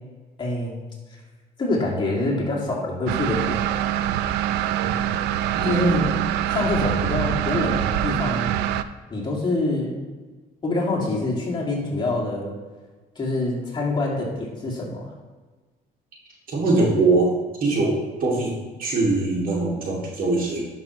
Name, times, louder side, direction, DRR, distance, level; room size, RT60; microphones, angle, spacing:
voice 1, 0.4-0.8 1.6-3.8 4.8-5.0 5.6-6.1 6.5-8.5 9.1-10.0 10.6-12.5 13.2-15.1, left 2 dB, 25° left, -4 dB, 2.3 m, -26 dB
sound 1, 3.1-8.8, right 11 dB, 90° right, 0.4 m, -24 dB
voice 2, 5.5-6.3 16.5-17.3 17.6-18.5 18.8-20.7, right 3 dB, 55° right, -2 dB, 2.4 m, -22 dB
11.5 x 5.8 x 3.0 m, 1.3 s
cardioid pair, 110°, 17 cm